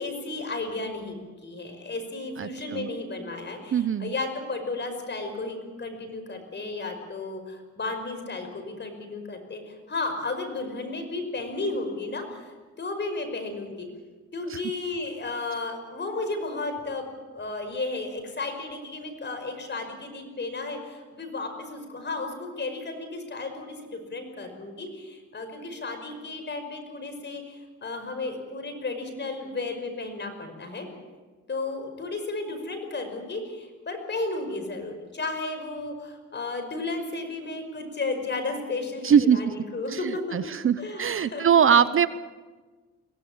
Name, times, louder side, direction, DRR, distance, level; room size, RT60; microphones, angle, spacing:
voice 1, 0.0-12.5 12.8-13.9 14.3-17.0 17.3-30.9 31.5-41.5 41.7-41.8, left 3 dB, 35° left, 6 dB, 5.6 m, -33 dB
voice 2, 2.4-2.9 3.7-4.1 14.5-14.6 39.0-39.4 39.9-42.1, right 8 dB, 45° right, 14 dB, 0.8 m, -22 dB
23.5 x 17.0 x 8.7 m, 1.4 s
cardioid pair, 90°, 30 cm